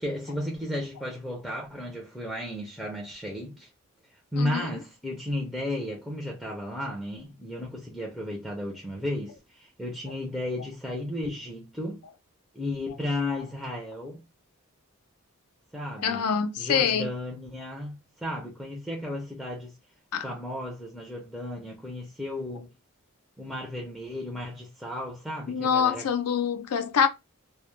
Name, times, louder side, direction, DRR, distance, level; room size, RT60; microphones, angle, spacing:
voice 1, 0.0-3.7 4.3-12.0 12.5-14.2 15.7-16.3 16.6-19.8 20.2-22.7 23.4-26.1, left 1 dB, ahead, 0.4 m, -34 dB
voice 2, 16.0-17.1 20.1-20.3 25.5-27.1, left 7 dB, 85° left, 0.4 m, -25 dB
2.1 x 2.0 x 3.0 m
head